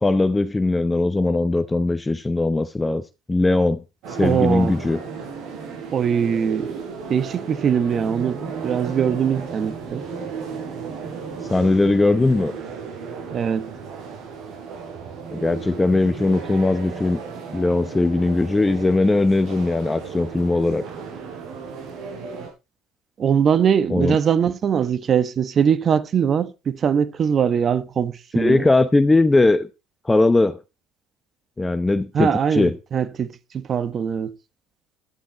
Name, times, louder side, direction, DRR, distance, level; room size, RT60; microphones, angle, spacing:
voice 1, 0.0-3.0 3.3-3.8 4.2-5.0 11.4-12.5 15.3-17.2 17.5-20.8 23.9-24.2 28.4-29.7 30.0-30.6 31.6-32.7, left 2 dB, 15° left, 0.8 m, -19 dB
sound 1, 4.0-22.5, right 5 dB, 65° right, 6.0 m, -34 dB
voice 2, 4.2-4.7 5.9-6.8 7.1-10.0 13.3-13.7 23.2-28.7 32.1-34.3, right 7 dB, 40° right, 1.3 m, -21 dB
12.5 x 10.0 x 4.2 m
supercardioid pair, 85°, 0 cm